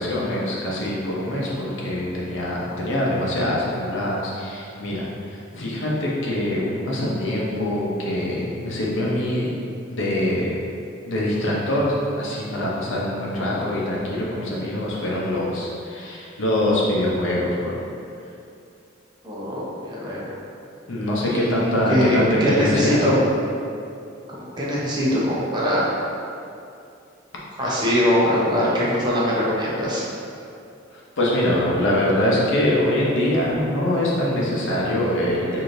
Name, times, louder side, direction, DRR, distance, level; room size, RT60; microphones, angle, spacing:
voice 1, 0.0-9.5 9.9-10.6 11.1-17.8 20.9-23.1 27.7-28.0 31.2-35.6, left 1 dB, 75° left, -5 dB, 0.7 m, -24 dB
voice 2, 19.2-20.3 21.3-23.2 24.3-25.9 27.6-30.0, equal, 20° right, -7 dB, 0.7 m, -22 dB
4.7 x 2.7 x 2.6 m, 2.5 s
head